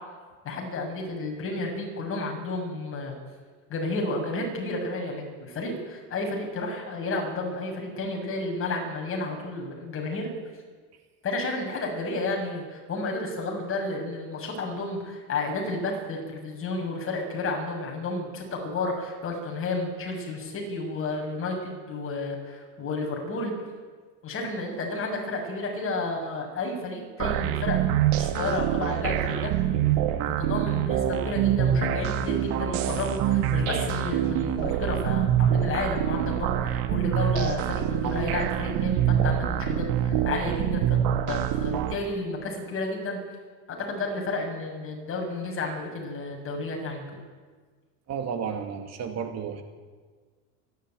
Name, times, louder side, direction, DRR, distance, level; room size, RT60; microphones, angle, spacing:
voice 1, 0.4-3.2 3.7-10.3 11.2-23.5 24.2-29.5 30.3-41.0 41.3-43.2 43.8-47.0, left 2 dB, 35° left, 1 dB, 7.2 m, -31 dB
sound 1, 27.2-42.0, right 10 dB, 65° right, 2.1 m, -25 dB
voice 2, 48.1-49.6, right 7 dB, 45° right, 6 dB, 2.7 m, -32 dB
28.5 x 13.0 x 9.2 m, 1.5 s
supercardioid pair, 120°, 38 cm